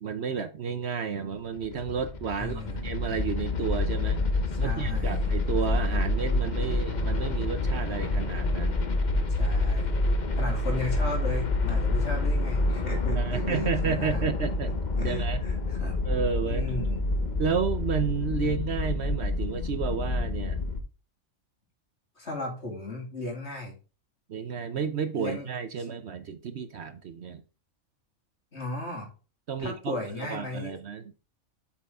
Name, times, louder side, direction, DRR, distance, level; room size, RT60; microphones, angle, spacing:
voice 1, 0.0-8.8 13.1-14.7 15.0-15.4 16.0-16.7 17.4-20.6 24.3-27.4 29.5-31.0, right 6 dB, 60° right, 0.9 m, -31 dB
sound 1, 1.4-20.8, left 2 dB, 35° left, 1.0 m, -28 dB
voice 2, 2.4-2.8 4.5-5.2 9.4-10.0 10.4-14.2 15.0-16.0 16.4-17.0 18.3-18.5 22.2-23.7 24.7-24.8 25.2-25.5 28.5-29.1 29.6-30.7, left 2 dB, 50° left, 3.1 m, -36 dB
8.1 x 6.0 x 3.5 m
omnidirectional pair, 1.4 m